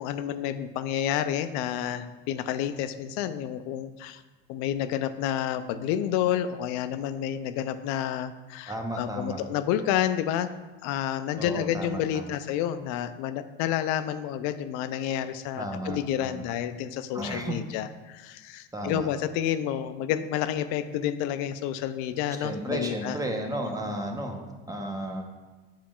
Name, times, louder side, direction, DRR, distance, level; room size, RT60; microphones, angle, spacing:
voice 1, 0.0-4.2 4.5-10.5 10.8-23.2 23.6-23.9, left 10 dB, 65° left, 11 dB, 0.5 m, -30 dB
voice 2, 8.7-9.4 11.4-12.3 15.6-16.4 17.1-17.6 18.7-19.1 22.4-25.2, right 1 dB, 10° right, 3 dB, 1.0 m, -33 dB
7.2 x 7.0 x 2.4 m, 1.2 s
hypercardioid pair, 85°, 30 cm